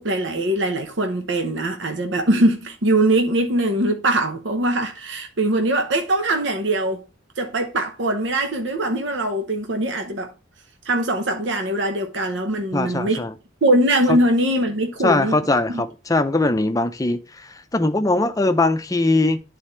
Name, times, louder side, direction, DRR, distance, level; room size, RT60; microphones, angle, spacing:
voice 1, 0.0-7.0 7.4-10.3 10.8-13.2 13.6-15.4 15.7-15.8, right 1 dB, 65° right, 0.9 m, -22 dB
voice 2, 12.7-13.3 14.1-14.2 15.0-19.4, left 2 dB, 20° left, 0.6 m, -21 dB
10.5 x 4.2 x 3.2 m
head